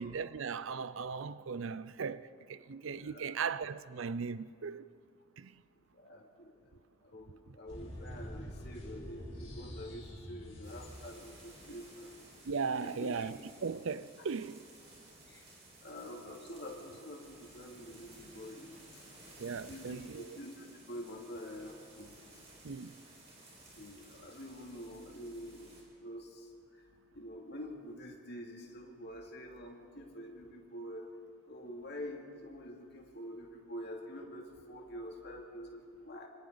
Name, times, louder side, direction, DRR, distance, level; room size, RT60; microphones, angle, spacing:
voice 1, 0.0-4.8 5.4-5.6 7.5-7.6 12.5-14.6 19.4-20.4 22.6-23.0, right 5 dB, 70° right, 0.5 m, -38 dB
voice 2, 3.0-3.4 5.8-12.1 12.8-13.3 15.2-15.5 15.8-19.0 19.7-22.4 23.7-26.8 27.1-31.1 31.5-36.3, equal, 50° left, 2.7 m, -47 dB
sound 1, 7.7-11.6, equal, 30° left, 4.2 m, -46 dB
sound 2, 10.6-25.8, right 2 dB, 30° right, 5.0 m, -56 dB
26.0 x 25.5 x 4.0 m
head